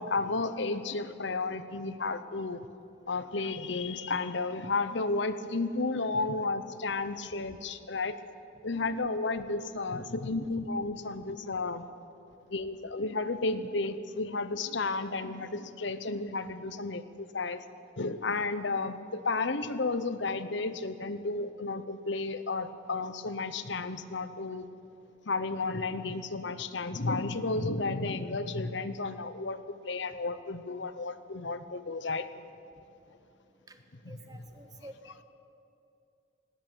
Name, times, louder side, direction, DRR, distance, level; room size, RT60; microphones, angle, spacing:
voice 1, 0.0-2.6 3.1-8.2 8.6-11.8 12.5-17.6 18.0-24.7 25.3-32.3 34.0-34.2, left 3 dB, 65° left, 12 dB, 1.0 m, -32 dB
voice 2, 34.1-35.2, right 1 dB, 20° right, 6 dB, 1.5 m, -50 dB
19.5 x 17.0 x 8.5 m, 2.6 s
head